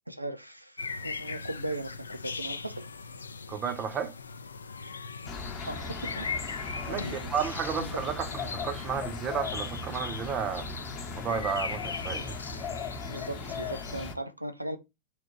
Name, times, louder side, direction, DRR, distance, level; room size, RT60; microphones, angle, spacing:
voice 1, 0.1-2.8 5.6-6.3 6.9-7.3 7.8-8.0 12.1-12.3 13.1-14.8, right 1 dB, 85° right, 0.5 m, -38 dB
sound 1, 0.8-14.1, left 4 dB, 75° left, 0.3 m, -39 dB
voice 2, 3.5-4.2 6.9-10.7 11.2-12.4, right 7 dB, 30° right, 0.6 m, -32 dB
sound 2, 5.2-14.1, left 4 dB, 30° left, 0.8 m, -38 dB
3.6 x 2.9 x 4.0 m
figure-of-eight pair, 90°, 0 cm